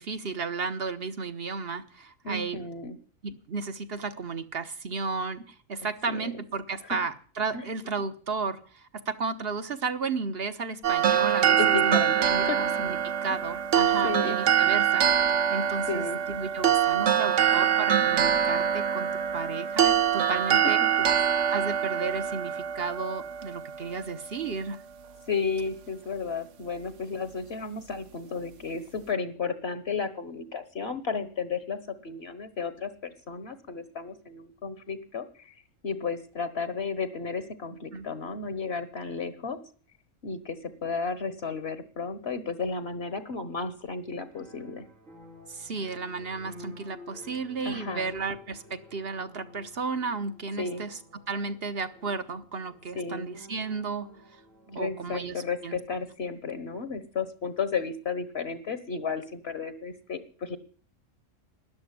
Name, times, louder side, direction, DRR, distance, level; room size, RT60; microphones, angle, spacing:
voice 1, 0.0-2.6 3.2-13.0 13.2-15.1 15.5-20.8 21.5-24.8 37.9-38.1 45.5-51.0 51.3-54.1 54.7-55.8, right 4 dB, 50° right, 11 dB, 1.4 m, -33 dB
voice 2, 2.2-3.0 6.1-6.3 6.8-7.0 7.5-7.7 11.6-12.7 13.3-13.4 14.0-14.4 15.9-16.2 25.3-39.6 40.2-44.9 47.6-48.2 50.6-50.8 52.9-53.3 54.7-60.6, left 5 dB, 55° left, 12 dB, 1.5 m, -33 dB
sound 1, 10.8-24.1, right 9 dB, 70° right, 1.2 m, -24 dB
sound 2, 44.3-55.6, left 1 dB, 85° right, 3.4 m, -51 dB
13.0 x 10.5 x 9.7 m, 0.43 s
omnidirectional pair, 1.3 m